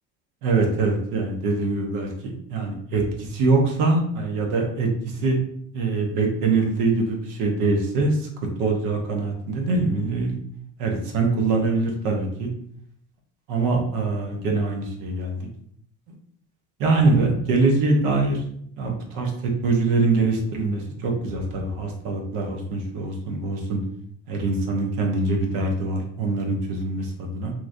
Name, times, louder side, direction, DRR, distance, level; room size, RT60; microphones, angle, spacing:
voice 1, 0.4-2.1 2.5-4.9 5.2-5.4 5.7-8.3 8.6-10.4 10.8-12.5 13.5-15.5 16.8-18.4 18.8-23.8 24.3-27.5, right 3 dB, 65° right, 1 dB, 0.9 m, -23 dB
2.9 x 2.4 x 2.6 m, 0.65 s
supercardioid pair, 85°, 34 cm